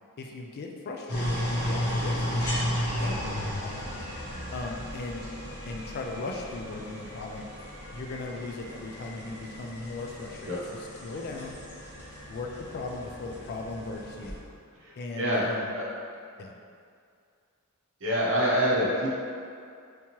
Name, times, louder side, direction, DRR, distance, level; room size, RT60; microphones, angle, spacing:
voice 1, 0.2-3.9 4.5-7.5 7.9-10.6 11.0-11.6 12.3-14.4 15.0-15.8 16.4-16.5, left 3 dB, 45° left, 1 dB, 0.3 m, -38 dB
sound 1, 1.1-14.3, equal, 85° left, 0.9 m, -34 dB
voice 2, 14.8-15.4 15.7-15.8 18.0-19.1, equal, 55° right, -6 dB, 0.7 m, -26 dB
3.5 x 2.9 x 2.9 m, 2.4 s
head